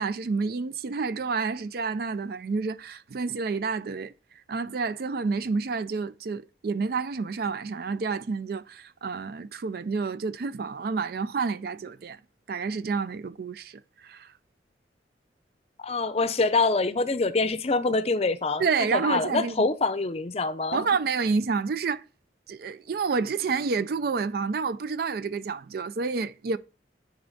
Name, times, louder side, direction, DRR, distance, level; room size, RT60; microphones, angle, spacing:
voice 1, 0.0-4.1 4.5-12.2 12.5-14.3 18.6-19.7 20.7-22.0 22.5-26.6, right 4 dB, 55° right, 0.4 m, -29 dB
voice 2, 15.8-18.7 18.9-20.9, left 3 dB, 35° left, 0.5 m, -25 dB
9.7 x 3.5 x 3.9 m
head